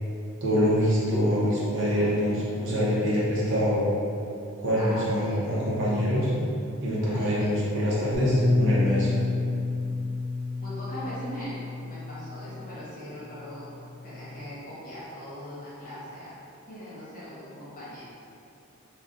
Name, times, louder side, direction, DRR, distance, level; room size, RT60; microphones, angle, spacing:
voice 1, 0.4-3.9 4.6-6.3 6.8-9.1, equal, 60° right, -7 dB, 0.7 m, -25 dB
voice 2, 4.8-5.6 7.0-7.6 10.6-11.6 11.9-13.7 14.0-16.4 16.7-18.0, equal, 40° left, -9 dB, 1.0 m, -40 dB
Bass guitar, 8.1-12.6 13.4-14.4, left 3 dB, 10° right, 0.9 m, -29 dB
2.4 x 2.3 x 3.8 m, 2.6 s
head